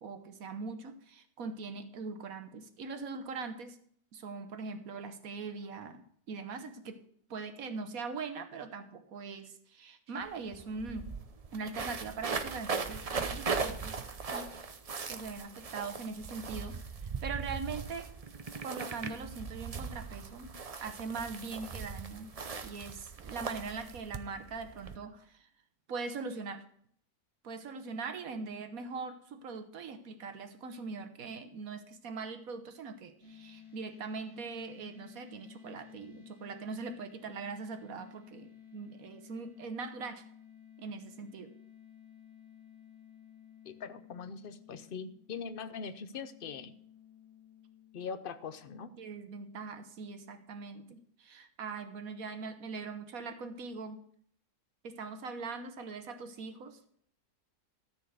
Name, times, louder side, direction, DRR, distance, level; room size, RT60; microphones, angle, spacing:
voice 1, 0.0-3.8 4.1-7.0 7.3-11.1 11.5-14.6 15.1-18.1 18.6-20.5 20.8-22.3 22.6-25.5 25.9-26.6 27.4-40.2 40.8-41.5 49.0-54.0 54.8-56.8, right 4 dB, 65° right, 8 dB, 1.4 m, -41 dB
sound 1, 10.2-10.3 10.5-25.0, right 5 dB, 45° right, 0.4 m, -39 dB
sound 2, 33.2-48.7, left 9 dB, 20° left, 2.1 m, -55 dB
voice 2, 43.6-46.7 47.9-48.9, left 6 dB, 55° left, 11 dB, 0.6 m, -42 dB
13.5 x 4.6 x 7.9 m, 0.63 s
omnidirectional pair, 1.7 m